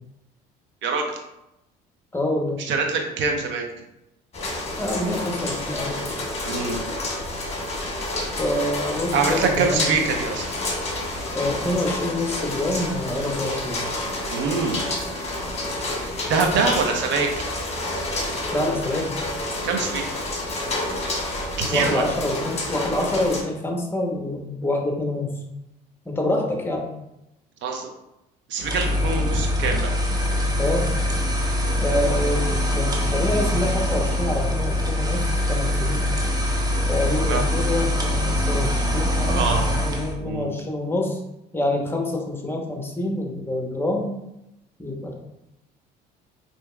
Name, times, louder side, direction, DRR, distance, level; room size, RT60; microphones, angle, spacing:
voice 1, 0.8-1.2 2.6-3.7 6.4-6.8 9.1-10.5 14.3-14.8 16.0-17.3 19.6-20.0 21.7-22.1 27.6-27.9 28.5-29.9 37.3-37.4 39.2-39.6 40.2-40.5, right 4 dB, 65° right, 3 dB, 0.8 m, -24 dB
voice 2, 2.1-2.6 4.8-5.9 8.4-9.8 11.3-13.8 18.5-19.1 21.7-25.3 26.1-26.8 30.6-30.9 31.8-32.5 32.7-36.1 36.9-41.2 41.5-44.1 44.8-45.1, left 1 dB, 10° left, 1 dB, 0.9 m, -26 dB
sound 1, 4.3-23.4, left 2 dB, 30° left, 1.2 m, -29 dB
sound 2, 28.6-40.2, left 1 dB, 20° right, 0.7 m, -23 dB
4.4 x 2.9 x 2.2 m, 0.88 s
supercardioid pair, 70°, 21 cm